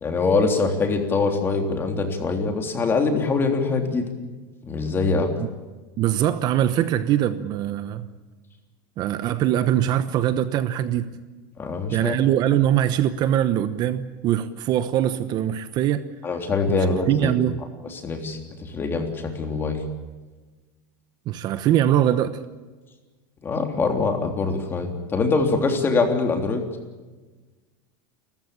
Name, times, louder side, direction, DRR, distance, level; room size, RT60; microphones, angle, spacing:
voice 1, 0.0-4.0 4.6-5.3 11.6-12.2 16.2-17.3 17.9-19.8 23.4-26.6, left 4 dB, 20° left, 4 dB, 3.4 m, -23 dB
voice 2, 6.0-8.1 9.0-11.2 11.9-16.1 16.7-17.6 21.3-22.4, right 11 dB, 40° right, 12 dB, 1.0 m, -22 dB
29.5 x 14.5 x 8.7 m, 1.3 s
supercardioid pair, 145°, 11 cm